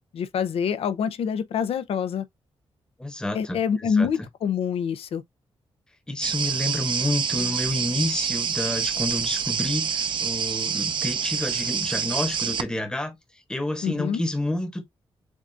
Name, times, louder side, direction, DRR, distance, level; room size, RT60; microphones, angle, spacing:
voice 1, 0.1-2.2 3.3-5.2 13.8-14.2, left 7 dB, 80° left, 0.6 m, -26 dB
voice 2, 3.0-4.3 6.1-14.8, left 1 dB, 10° left, 0.9 m, -29 dB
sound 1, 6.2-12.6, right 7 dB, 55° right, 0.6 m, -27 dB
7.2 x 2.4 x 2.6 m
wide cardioid pair, 140°, 10 cm